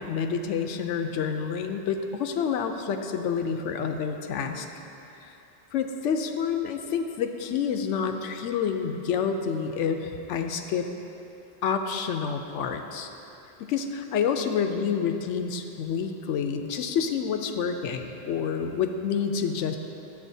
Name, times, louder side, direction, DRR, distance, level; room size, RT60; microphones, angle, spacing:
voice 1, 0.0-4.7 5.2-5.3 5.7-10.9 11.6-13.1 13.6-19.8, left 6 dB, 90° left, 6 dB, 0.9 m, -28 dB
12.0 x 8.0 x 2.7 m, 2.9 s
omnidirectional pair, 1.2 m